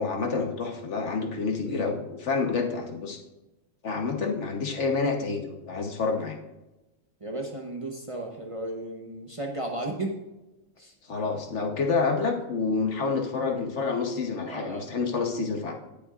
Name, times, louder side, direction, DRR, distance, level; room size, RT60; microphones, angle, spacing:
voice 1, 0.0-3.2 3.8-6.4 11.1-15.7, left 4 dB, 60° left, 3 dB, 1.3 m, -28 dB
voice 2, 7.2-10.2 10.8-10.9 14.5-14.9, right 1 dB, 30° right, 1 dB, 0.9 m, -34 dB
17.5 x 7.0 x 2.4 m, 1.0 s
omnidirectional pair, 1.4 m